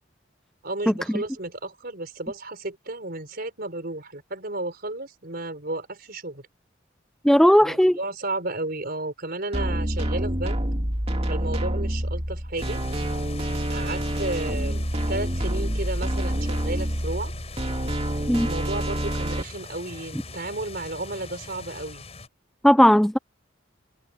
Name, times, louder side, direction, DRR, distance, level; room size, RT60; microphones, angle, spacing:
voice 1, 0.6-6.5 7.6-10.6 11.3-12.8 13.7-17.3 18.4-22.0, right 2 dB, 50° right, 4.5 m, -33 dB
voice 2, 7.2-8.0 18.3-18.5 22.6-23.2, equal, ahead, 0.4 m, -16 dB
sound 1, 9.5-19.4, equal, 30° right, 2.5 m, -27 dB
sound 2, 12.6-22.3, left 3 dB, 35° left, 5.2 m, -41 dB
head